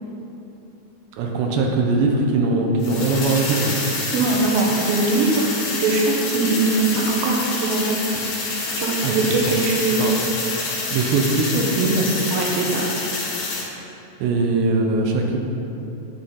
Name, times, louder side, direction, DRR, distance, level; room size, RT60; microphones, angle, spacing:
voice 1, 1.2-3.8 9.0-9.4 9.9-10.1 10.9-12.1 14.2-15.4, right 3 dB, 90° right, 1 dB, 3.1 m, -21 dB
sound 1, 2.8-13.6, left 3 dB, 65° left, 3.5 m, -27 dB
voice 2, 4.1-8.0 8.8-10.1 12.3-12.9, right 3 dB, 70° right, -1 dB, 2.6 m, -21 dB
10.5 x 8.9 x 3.8 m, 2.9 s
omnidirectional pair, 4.9 m